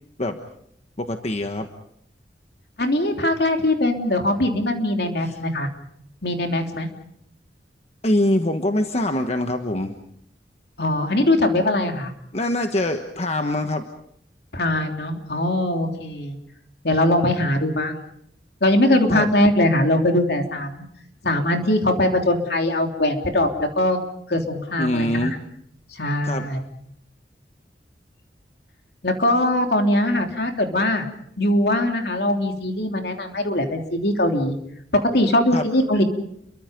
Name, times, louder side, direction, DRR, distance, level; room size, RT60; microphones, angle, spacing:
voice 1, 1.0-1.7 5.2-5.4 8.0-10.0 12.3-13.8 19.1-19.3 24.8-25.4 26.2-26.5 35.5-35.7, left 1 dB, 40° left, 6 dB, 1.3 m, -23 dB
voice 2, 2.8-5.7 6.2-6.9 10.8-12.1 14.5-16.4 16.8-18.0 18.6-20.9 21.2-24.0 24.3-25.4 26.0-26.6 29.0-31.1 31.4-34.6 35.0-36.0, left 1 dB, 65° left, 4 dB, 3.3 m, -21 dB
30.0 x 23.5 x 5.2 m, 0.72 s
head